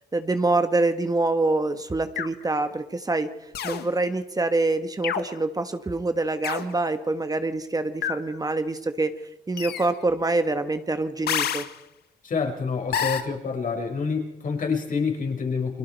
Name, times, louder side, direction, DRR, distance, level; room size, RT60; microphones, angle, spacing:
voice 1, 0.1-3.3 3.6-9.1 9.5-11.6, right 2 dB, 20° right, 8 dB, 1.4 m, -25 dB
sound 1, 2.2-2.4 3.5-3.9 5.0-5.4 6.4-6.7 8.0-8.3 9.6-9.9 11.3-11.7 12.9-13.2, left 9 dB, 80° left, 1.5 m, -28 dB
voice 2, 12.2-15.8, left 5 dB, 55° left, 2 dB, 5.2 m, -27 dB
29.5 x 22.0 x 4.6 m, 0.88 s
cardioid pair, 80°, 17 cm